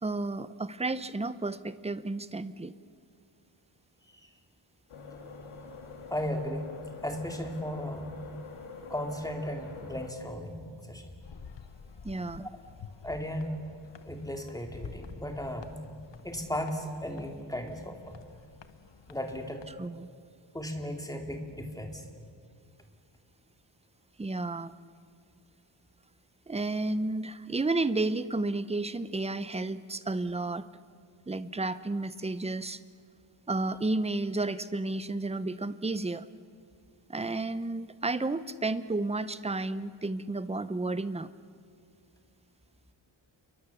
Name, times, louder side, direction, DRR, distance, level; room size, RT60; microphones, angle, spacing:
voice 1, 0.0-2.7 12.0-12.5 19.8-20.1 24.2-24.7 26.5-30.6 31.3-32.8 33.5-36.3 37.1-41.3, right 2 dB, 15° right, 14 dB, 0.6 m, -32 dB
sound 1, 4.9-10.1, left 4 dB, 85° left, 2.7 m, -45 dB
voice 2, 6.1-6.7 7.0-8.2 8.9-11.2 12.4-12.5 13.0-13.6 14.0-15.8 16.2-18.2 19.1-19.6 20.5-22.0, equal, 5° left, 3 dB, 2.4 m, -36 dB
sound 2, 11.2-19.9, left 6 dB, 60° left, 1.1 m, -50 dB
29.0 x 23.0 x 7.1 m, 2.3 s
wide cardioid pair, 155°, 49 cm